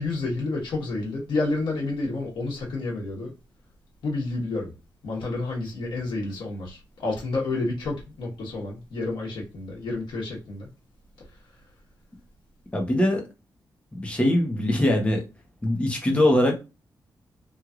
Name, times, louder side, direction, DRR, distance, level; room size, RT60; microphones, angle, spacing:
voice 1, 0.0-3.3 4.0-4.7 5.0-10.7, left 2 dB, 85° left, 1.2 m, -30 dB
voice 2, 12.7-13.2 13.9-15.2 15.6-16.6, left 1 dB, 15° left, 1.0 m, -22 dB
3.0 x 2.7 x 2.4 m
wide cardioid pair, 145°, 8 cm